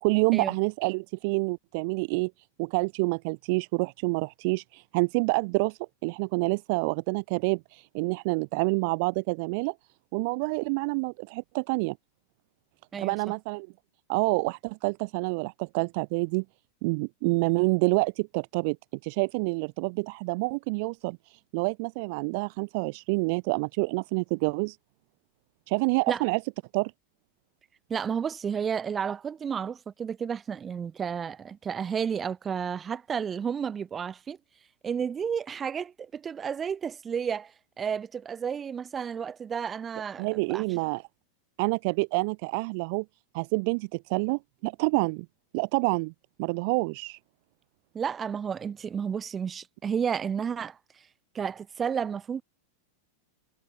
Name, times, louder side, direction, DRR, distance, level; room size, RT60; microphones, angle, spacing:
voice 1, 0.0-2.3 2.6-9.7 10.1-12.0 13.0-13.7 14.1-16.4 16.8-18.8 19.0-24.8 25.7-26.4 26.7-26.9 40.2-41.0 41.6-43.0 43.3-45.2 45.5-46.1 46.4-47.2, right 30 dB, 45° right, 1.7 m, -27 dB
voice 2, 27.9-34.4 34.8-40.8 47.9-50.8 51.3-52.4, right 7 dB, 20° right, 4.1 m, -32 dB
figure-of-eight pair, 90°, 0 cm